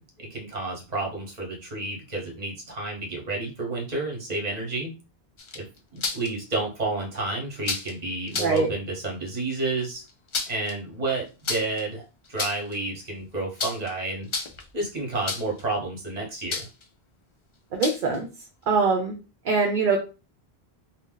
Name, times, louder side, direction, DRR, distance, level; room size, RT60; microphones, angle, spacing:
voice 1, 0.2-4.9 5.5-5.7 5.9-10.0 10.5-12.0 12.3-14.3 14.7-16.7, right 2 dB, 40° right, 0 dB, 1.1 m, -30 dB
sound 1, 5.4-6.3 7.6-7.9 8.3-8.6 10.1-10.7 11.4-11.8 12.2-12.8 13.6-13.9 14.2-14.7 15.3-15.6 16.5-16.8 17.8-18.2, left 4 dB, 50° left, 0.3 m, -31 dB
voice 2, 17.7-18.3 18.7-19.1 19.4-20.0, right 4 dB, 60° right, 2 dB, 0.6 m, -22 dB
2.6 x 2.1 x 3.7 m, 0.31 s
omnidirectional pair, 1.1 m